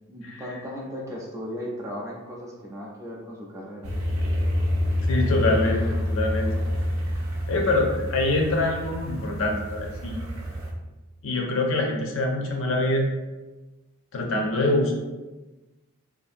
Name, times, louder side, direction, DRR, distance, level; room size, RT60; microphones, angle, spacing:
voice 1, 0.1-3.9, equal, 15° right, -3 dB, 0.4 m, -36 dB
sound 1, 3.8-10.7, left 1 dB, 85° right, 0.6 m, -27 dB
voice 2, 5.0-6.5 7.5-10.2 11.2-13.1 14.1-15.0, left 2 dB, 70° left, 1 dB, 0.5 m, -24 dB
2.6 x 2.4 x 2.5 m, 1.1 s
head